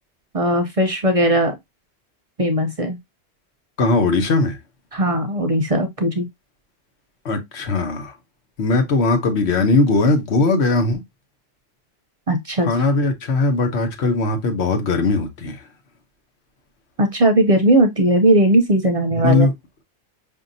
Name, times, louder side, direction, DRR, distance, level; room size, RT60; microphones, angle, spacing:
voice 1, 0.3-1.6 2.4-3.0 4.9-6.3 12.3-12.7 17.0-19.5, right 1 dB, 40° right, 0.6 m, -18 dB
voice 2, 3.8-4.6 7.2-8.1 8.6-11.0 12.6-15.6 19.2-19.5, left 3 dB, 80° left, 1.2 m, -19 dB
5.3 x 2.8 x 2.6 m
omnidirectional pair, 1.1 m